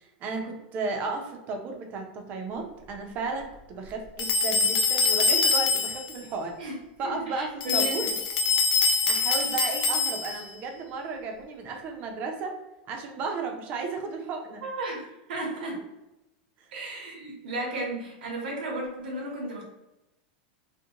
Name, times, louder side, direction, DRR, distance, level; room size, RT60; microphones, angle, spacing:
voice 1, 0.0-6.6 7.0-8.1 9.1-12.5 12.9-14.6 15.3-15.7, right 4 dB, 35° right, 3 dB, 0.5 m, -34 dB
sound 1, 4.2-6.2 7.6-10.5, left 4 dB, 70° left, 0.4 m, -24 dB
voice 2, 6.6-8.1 14.6-15.8 16.7-19.6, right 1 dB, 85° right, -2 dB, 0.7 m, -34 dB
2.4 x 2.1 x 2.8 m, 0.96 s
supercardioid pair, 150°, 5 cm